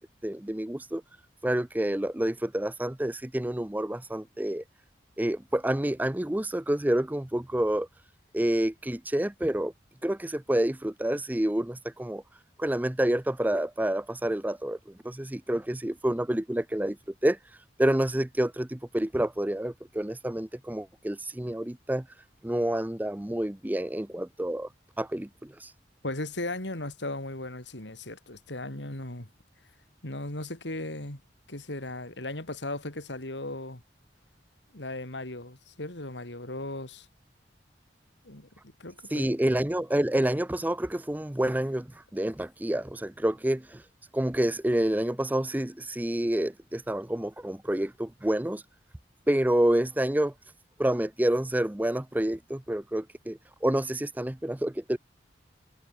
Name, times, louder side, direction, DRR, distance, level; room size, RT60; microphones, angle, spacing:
voice 1, 0.2-1.0 1.4-4.6 5.2-7.9 8.3-9.7 10.0-12.2 12.6-17.0 17.2-17.4 17.8-22.0 22.4-24.7 25.0-25.7 39.1-43.8 44.1-48.6 49.3-50.3 50.8-55.0, right 1 dB, 10° right, 0.5 m, -28 dB
voice 2, 26.0-29.3 30.0-31.2 31.5-33.8 34.7-37.1 38.3-38.5 38.8-39.3, left 2 dB, 85° left, 4.0 m, -37 dB
head